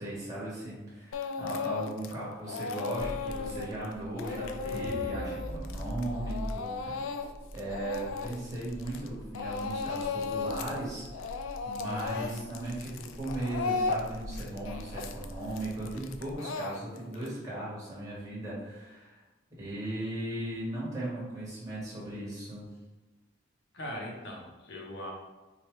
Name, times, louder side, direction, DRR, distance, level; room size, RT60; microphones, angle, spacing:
voice 1, 0.0-7.1 7.5-11.3 11.6-19.2 19.6-22.6, right 1 dB, 15° right, -8 dB, 1.2 m, -37 dB
Speech / Crying sobbing, 1.1-2.1 2.4-9.1 9.3-10.8 11.1-17.3, left 4 dB, 85° left, 0.3 m, -35 dB
sound 1, 3.0-16.4, equal, 85° right, 0.8 m, -47 dB
sound 2, 4.7-6.6, equal, 40° right, 1.1 m, -38 dB
voice 2, 11.8-12.4 23.7-25.1, left 1 dB, 60° left, -2 dB, 0.7 m, -40 dB
4.5 x 2.3 x 3.1 m, 1.1 s
head